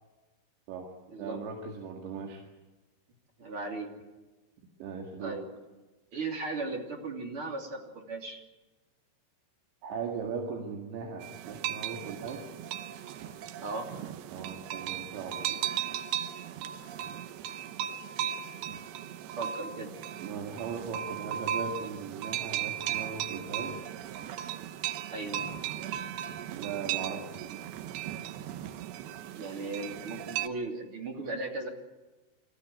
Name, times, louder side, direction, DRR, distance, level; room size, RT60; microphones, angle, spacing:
voice 1, 1.2-2.4 4.8-5.4 9.8-12.6 14.3-15.6 20.2-23.9 26.5-27.6, right 5 dB, 65° right, 1 dB, 4.1 m, -38 dB
voice 2, 3.4-3.9 5.2-5.5 6.1-8.4 13.6-13.9 19.4-19.9 25.1-25.4 29.3-31.7, right 3 dB, 35° right, 1 dB, 3.0 m, -36 dB
sound 1, 11.2-30.5, right 10 dB, 85° right, 2.1 m, -37 dB
28.0 x 14.5 x 9.7 m, 1.2 s
omnidirectional pair, 5.7 m